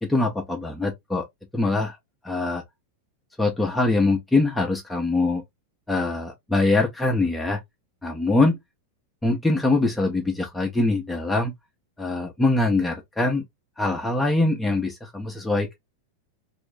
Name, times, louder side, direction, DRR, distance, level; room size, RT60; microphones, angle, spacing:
voice 1, 0.0-1.2 1.5-2.0 2.2-2.6 3.4-5.4 5.9-7.6 8.0-8.6 9.2-11.5 12.0-13.4 13.8-15.8, left 2 dB, 5° left, 0.7 m, -23 dB
3.0 x 2.7 x 3.5 m
figure-of-eight pair, 90°, 0 cm